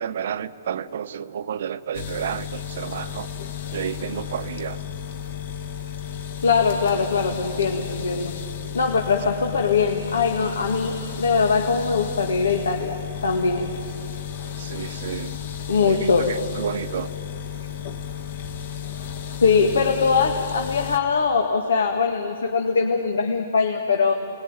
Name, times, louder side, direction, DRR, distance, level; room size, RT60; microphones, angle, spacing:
voice 1, 0.0-3.3 3.7-4.8 14.6-15.4 15.8-17.1, right 8 dB, 60° right, 13 dB, 0.9 m, -31 dB
sound 1, 1.9-21.0, left 9 dB, 50° left, 1.6 m, -33 dB
voice 2, 6.4-8.4 8.7-13.7 15.7-16.4 19.4-24.1, left 5 dB, 90° left, 3 dB, 2.1 m, -22 dB
28.5 x 20.5 x 9.1 m, 2.7 s
hypercardioid pair, 155°, 0 cm